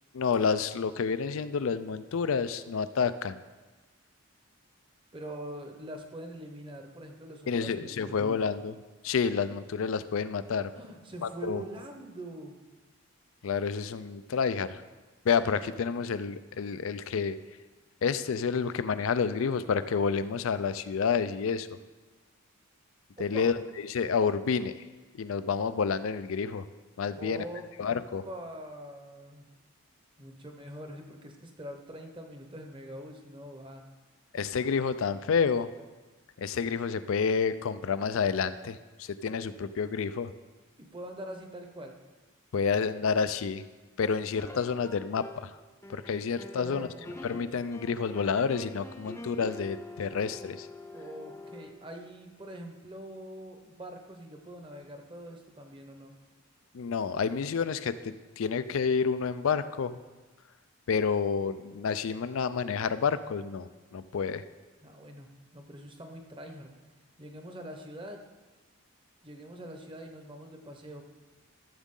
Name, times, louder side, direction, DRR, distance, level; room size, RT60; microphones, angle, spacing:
voice 1, 0.1-3.4 7.5-8.8 9.0-10.7 11.2-11.6 13.4-14.8 15.2-17.4 18.0-21.8 23.2-23.5 23.8-24.7 25.1-26.7 27.0-27.4 27.8-28.2 34.3-35.7 36.4-40.3 42.5-43.7 44.0-45.6 45.9-46.9 47.2-50.7 56.7-60.0 60.9-64.4, left 6 dB, 65° left, 13 dB, 0.4 m, -29 dB
voice 2, 5.1-8.5 10.7-12.6 23.2-23.5 27.1-27.7 28.2-29.5 30.2-33.8 40.8-42.0 46.5-47.2 50.9-56.1 64.8-66.7 67.2-68.2 69.2-71.0, right 1 dB, 20° right, 4 dB, 0.9 m, -44 dB
sound 1, 44.4-45.5 45.8-51.7, left 2 dB, 10° left, 0.6 m, -45 dB
13.5 x 7.2 x 3.8 m, 1.3 s
head